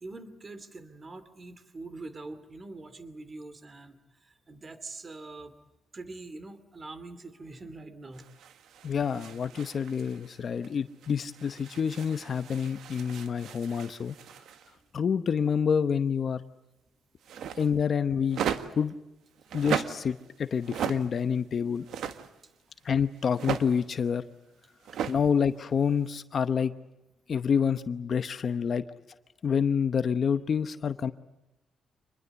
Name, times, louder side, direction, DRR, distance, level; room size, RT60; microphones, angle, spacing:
voice 1, 0.0-5.5 5.9-8.3 25.0-25.1, right 2 dB, 30° right, 13 dB, 2.5 m, -44 dB
sound 1, 8.1-10.7 11.0-14.8 17.2-17.8 18.3-18.9 19.4-20.2 20.5-21.3 21.7-22.3 23.2-24.1 24.8-25.2 25.6-25.7 26.0-26.2, right 8 dB, 80° right, 1.6 m, -37 dB
voice 2, 8.8-14.1 14.9-16.4 17.6-18.4 18.8-18.9 19.5-21.9 22.8-24.2 25.1-26.7 27.3-28.8 29.4-31.1, left 7 dB, 45° left, 11 dB, 0.9 m, -27 dB
26.5 x 21.0 x 8.1 m, 0.96 s
cardioid pair, 125°, 0 cm